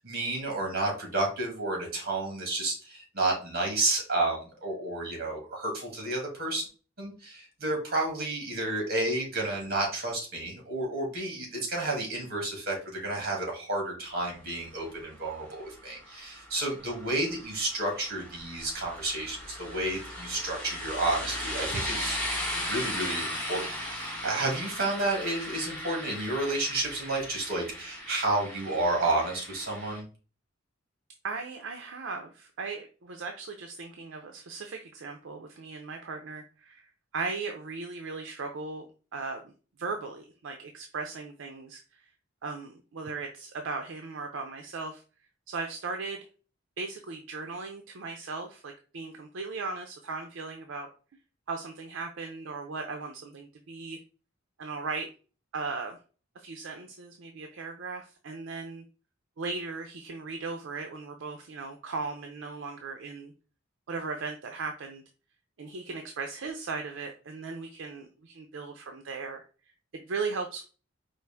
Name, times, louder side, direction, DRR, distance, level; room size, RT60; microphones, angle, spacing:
voice 1, 0.0-6.6 7.0-22.2 22.5-30.0, right 2 dB, 50° right, 0 dB, 1.7 m, -31 dB
sound 1, 15.0-30.0, left 1 dB, 10° left, 1.5 m, -37 dB
voice 2, 31.2-38.9 39.1-39.4 39.8-42.1 42.4-45.0 45.5-46.3 46.8-50.9 51.5-54.0 54.6-55.1 55.5-56.0 56.4-58.8 59.4-63.3 63.9-65.0 65.6-69.4 69.9-70.6, right 4 dB, 70° right, 4 dB, 0.5 m, -37 dB
4.6 x 2.4 x 3.4 m, 0.37 s
head